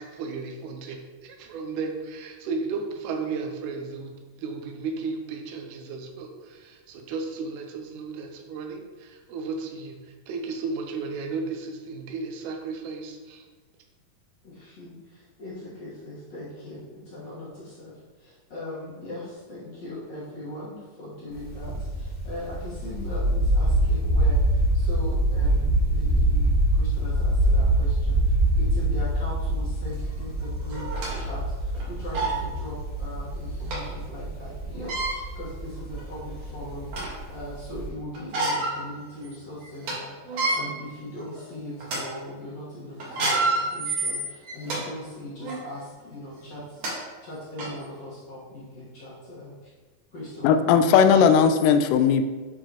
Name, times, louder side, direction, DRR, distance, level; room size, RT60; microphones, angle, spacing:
voice 1, 0.0-10.0 10.3-13.4, right 4 dB, 75° right, 4 dB, 2.1 m, -34 dB
voice 2, 14.4-49.5 50.1-51.2, left 1 dB, 55° left, -9 dB, 2.4 m, -40 dB
sound 1, 21.3-37.9, right 1 dB, 5° left, 0.6 m, -25 dB
sound 2, 30.0-30.1 30.7-31.2 31.7-31.8 32.1-32.4 33.7-33.8 34.7-35.2 35.9-36.0 36.5-37.2 38.1-38.8 39.2-39.3 39.7-39.9 40.3-40.6 41.2-41.4 41.8-42.0 43.0-44.8 45.4-45.6 46.4-46.5 46.8-46.9 47.6-47.7, right 2 dB, 55° right, 2.5 m, -27 dB
voice 3, 50.4-52.3, left 7 dB, 80° left, 8 dB, 2.1 m, -18 dB
9.8 x 4.7 x 3.0 m, 1.3 s
omnidirectional pair, 3.9 m